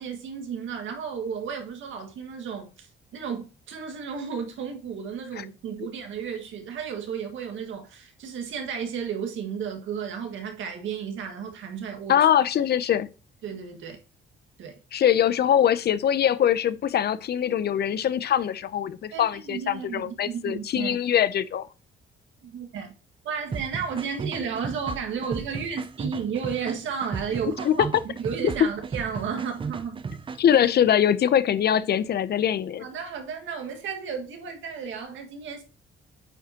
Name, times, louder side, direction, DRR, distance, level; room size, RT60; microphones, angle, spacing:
voice 1, 0.0-12.3 13.4-14.0 14.6-14.8 19.1-20.9 22.4-22.9 23.2-30.0 32.8-35.6, right 6 dB, 75° right, 1.7 m, -33 dB
voice 2, 12.1-13.1 14.9-21.7 27.6-27.7 30.4-32.9, left 9 dB, 55° left, 0.6 m, -22 dB
sound 1, 23.5-30.7, right 5 dB, 25° right, 0.5 m, -35 dB
8.9 x 4.9 x 2.8 m
cardioid pair, 90°, 20 cm